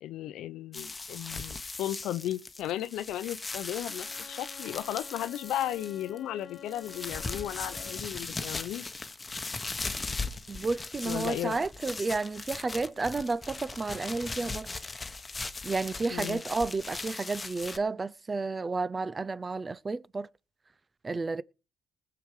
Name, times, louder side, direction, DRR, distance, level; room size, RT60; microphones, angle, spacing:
voice 1, 0.0-8.9 11.0-11.6 16.1-16.4, left 12 dB, 85° left, 0.7 m, -35 dB
sound 1, 0.7-6.2 6.5-17.8, left 3 dB, 25° left, 1.1 m, -39 dB
Bowed string instrument, 3.9-8.3, left 9 dB, 55° left, 1.3 m, -49 dB
voice 2, 10.5-14.7 15.6-20.3 21.0-21.4, right 3 dB, 30° right, 0.6 m, -31 dB
19.5 x 6.9 x 4.9 m
cardioid pair, 90°, 0 cm